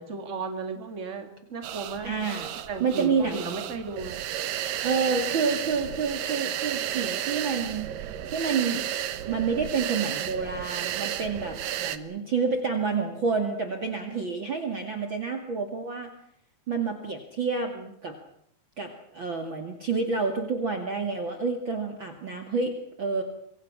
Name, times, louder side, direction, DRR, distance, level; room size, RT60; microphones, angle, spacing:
voice 1, 0.0-4.2 17.7-17.9, right 4 dB, 20° right, 5 dB, 2.7 m, -35 dB
sound 1, 1.6-12.0, right 11 dB, 70° right, 2.8 m, -33 dB
voice 2, 2.0-2.5 2.8-3.4 4.8-7.9 8.2-8.8 9.3-16.1 16.7-17.7 18.0-18.2 18.8-23.2, right 5 dB, 35° right, 6 dB, 2.7 m, -28 dB
27.0 x 24.5 x 6.2 m, 0.68 s
omnidirectional pair, 4.2 m